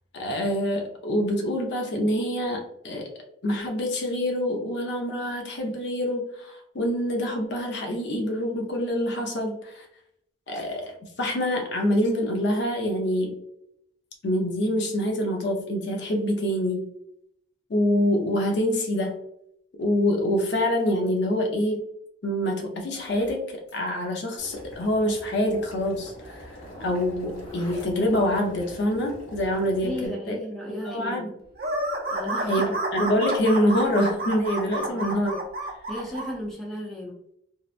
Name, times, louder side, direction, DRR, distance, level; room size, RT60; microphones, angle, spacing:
voice 1, 0.1-3.1 3.4-9.9 10.5-13.4 14.2-16.9 17.7-19.2 19.8-21.9 22.2-30.3 30.8-31.3 32.5-35.4, equal, 55° left, 2 dB, 0.5 m, -26 dB
Zipper (clothing), 22.9-23.4 23.7-23.9 24.2-24.3 24.6-24.7 25.5-25.6 25.9-28.2, left 1 dB, 30° left, 1.0 m, -45 dB
Boiling, 24.4-30.1, equal, 75° left, 0.9 m, -44 dB
voice 2, 29.7-31.4 32.1-32.5 34.8-35.4 35.9-37.3, equal, ahead, -4 dB, 0.5 m, -35 dB
sound 1, 31.6-36.3, right 1 dB, 50° right, 0.5 m, -30 dB
2.7 x 2.1 x 2.4 m, 0.74 s
head